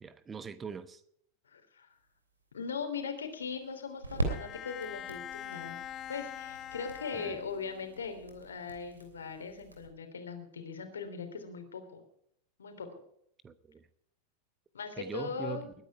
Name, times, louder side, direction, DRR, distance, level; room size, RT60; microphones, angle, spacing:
voice 1, 0.0-1.0 7.1-7.4 13.4-13.9 15.0-15.7, right 6 dB, 20° right, 1.0 m, -42 dB
voice 2, 1.5-1.9 2.5-5.8 6.1-12.0 12.6-12.9 14.7-15.6, left 5 dB, 70° left, 3.3 m, -40 dB
sound 1, 1.9-9.9, right 2 dB, 80° right, 3.1 m, -42 dB
Bowed string instrument, 4.3-7.9, left 10 dB, 30° left, 0.8 m, -44 dB
21.0 x 10.0 x 4.8 m
figure-of-eight pair, 90°, 0 cm